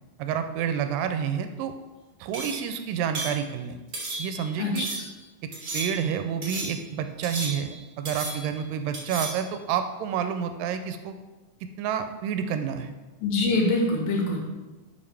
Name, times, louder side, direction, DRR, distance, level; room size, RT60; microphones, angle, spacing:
voice 1, 0.2-1.7 2.2-3.8 4.2-4.9 5.7-11.1 11.8-12.9, right 8 dB, 80° right, 8 dB, 2.2 m, -29 dB
sound 1, 2.3-2.7 3.1-3.4 3.9-4.5 4.8-5.1 5.5-6.1 6.4-6.9 7.2-8.6 8.9-9.5, right 2 dB, 40° right, 1.4 m, -34 dB
voice 2, 13.2-14.4, left 2 dB, 80° left, 0 dB, 3.1 m, -24 dB
11.0 x 5.7 x 3.3 m, 1.2 s
omnidirectional pair, 4.0 m